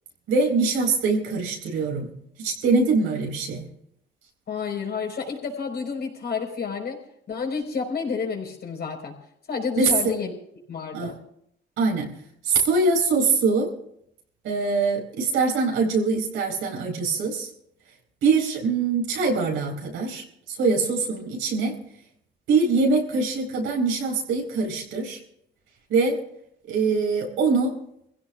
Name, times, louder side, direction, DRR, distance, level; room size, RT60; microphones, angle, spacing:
voice 1, 0.3-2.1 2.4-3.7 9.8-10.1 10.9-11.1 11.8-12.1 12.4-13.7 14.4-17.5 18.2-21.8 22.5-25.2 25.9-26.2 26.7-27.7, right 4 dB, 90° right, 0 dB, 4.6 m, -23 dB
voice 2, 4.5-7.0 7.3-9.2 9.5-10.3 10.7-11.1, left 5 dB, 55° left, 2 dB, 4.8 m, -30 dB
24.0 x 16.0 x 2.5 m, 0.72 s
cardioid pair, 90°, 20 cm